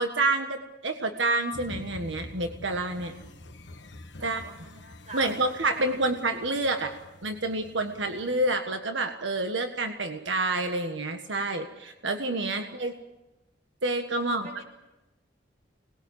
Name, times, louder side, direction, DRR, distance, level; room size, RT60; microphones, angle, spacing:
voice 1, 0.0-3.1 4.2-4.4 5.1-6.9 7.2-12.9 13.8-14.5, right 2 dB, 85° right, 5 dB, 1.6 m, -28 dB
sound 1, 1.5-8.5, left 1 dB, 65° left, 1.5 m, -46 dB
voice 2, 4.1-6.1 12.5-12.9 14.2-14.6, right 2 dB, 40° right, 3 dB, 6.0 m, -46 dB
25.5 x 20.0 x 8.6 m, 1.0 s
head